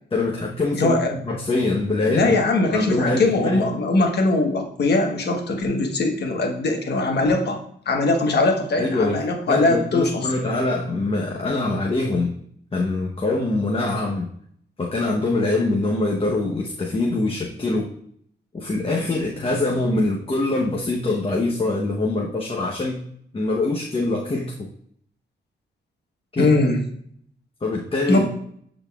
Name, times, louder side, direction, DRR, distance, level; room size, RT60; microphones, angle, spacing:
voice 1, 0.1-2.3 2.7-3.6 8.8-9.2 9.5-12.3 12.7-14.3 14.8-17.9 18.5-23.0 23.3-24.5 26.3-26.5 27.6-28.2, left 2 dB, 30° left, -1 dB, 1.0 m, -23 dB
voice 2, 0.7-1.2 2.1-7.6 7.9-10.3 26.4-26.8 28.1-28.2, left 2 dB, 65° left, 3 dB, 1.3 m, -21 dB
10.0 x 4.0 x 2.4 m, 0.65 s
cardioid pair, 70°, 18 cm